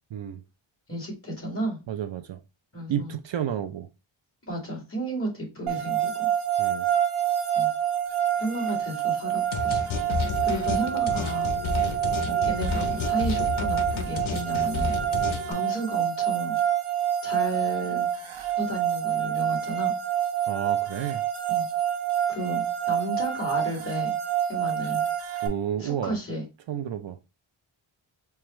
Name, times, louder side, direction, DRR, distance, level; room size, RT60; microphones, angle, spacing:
voice 1, 0.1-0.4 1.9-2.4 2.9-3.9 6.6-6.9 11.8-12.0 15.2-15.4 20.5-21.2 25.4-26.2 26.7-27.2, right 9 dB, 65° right, 0.5 m, -31 dB
voice 2, 0.9-1.8 2.7-3.2 4.4-6.3 7.5-7.7 8.3-9.8 10.4-11.5 12.3-14.9 15.2-16.6 17.2-18.1 18.6-19.9 21.5-21.7 22.3-24.1 24.5-25.1 25.8-26.4, right 1 dB, 25° left, 1.9 m, -33 dB
sound 1, 5.7-25.5, right 10 dB, 85° right, 1.0 m, -27 dB
sound 2, 9.5-15.5, left 5 dB, 75° left, 0.8 m, -31 dB
4.7 x 2.3 x 2.9 m
wide cardioid pair, 125°, 48 cm